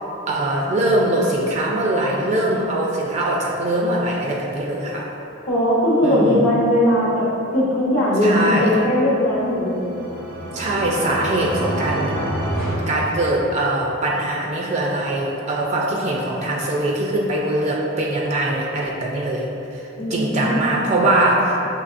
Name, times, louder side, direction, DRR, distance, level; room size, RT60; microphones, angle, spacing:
voice 1, 0.3-5.1 6.0-6.4 8.2-8.8 10.5-12.1 12.8-21.6, right 1 dB, 35° right, -2 dB, 0.3 m, -22 dB
voice 2, 5.5-7.2 7.5-9.9 20.0-20.7, left 1 dB, 70° left, -8 dB, 0.9 m, -19 dB
sound 1, 9.3-13.9, right 1 dB, 80° right, 0.7 m, -28 dB
6.6 x 2.8 x 2.5 m, 3.0 s
head